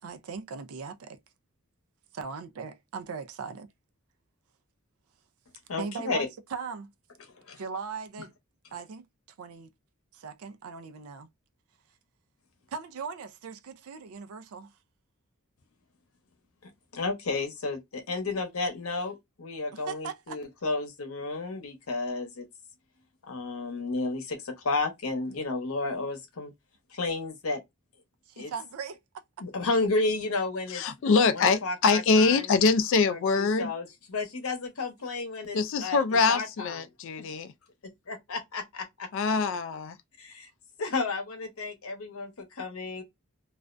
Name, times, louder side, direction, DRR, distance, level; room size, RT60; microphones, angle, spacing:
voice 1, 0.0-1.2 2.1-3.7 5.8-6.9 7.6-8.3 8.7-9.1 9.4-9.7 10.1-11.3 12.7-14.7 19.7-20.4 28.3-29.0, right 5 dB, 80° right, 0.4 m, -39 dB
voice 2, 5.7-6.3 7.2-7.6 16.6-19.1 19.4-22.5 23.3-26.5 26.9-27.6 28.4-28.5 29.4-32.5 33.1-36.0 36.3-36.8 38.1-39.1 40.2-40.5 40.8-43.0, left 3 dB, 75° left, 0.8 m, -32 dB
voice 3, 30.7-33.7 35.5-37.5 39.1-40.0, left 4 dB, 60° left, 0.3 m, -24 dB
2.4 x 2.1 x 2.4 m
head